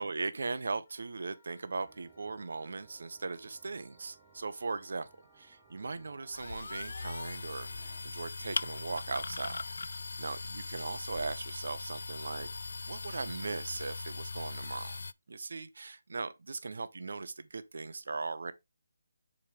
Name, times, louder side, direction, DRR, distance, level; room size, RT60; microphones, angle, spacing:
voice 1, 0.0-5.1 5.4-9.6 10.2-12.5 12.9-15.0 15.3-18.5, right 3 dB, 60° right, 0.8 m, -39 dB
Wind instrument woodwind instrument, 0.8-13.3, left 3 dB, 35° left, 1.2 m, -68 dB
sound 1, 1.8-8.0, right 8 dB, 10° right, 0.5 m, -63 dB
sound 2, 6.3-15.1, left 3 dB, 65° left, 0.3 m, -40 dB
7.2 x 4.8 x 3.4 m
hypercardioid pair, 180°, 0 cm